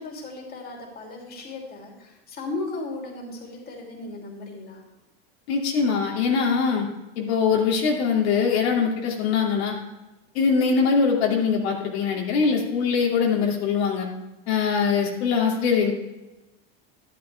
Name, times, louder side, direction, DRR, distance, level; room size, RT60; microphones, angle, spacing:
voice 1, 0.0-4.8, left 2 dB, 30° left, 0 dB, 3.0 m, -36 dB
voice 2, 5.5-6.9 7.2-9.7 10.3-14.1 14.5-15.9, left 5 dB, 90° left, -1 dB, 2.7 m, -22 dB
11.5 x 11.5 x 3.4 m, 1.0 s
supercardioid pair, 135°, 31 cm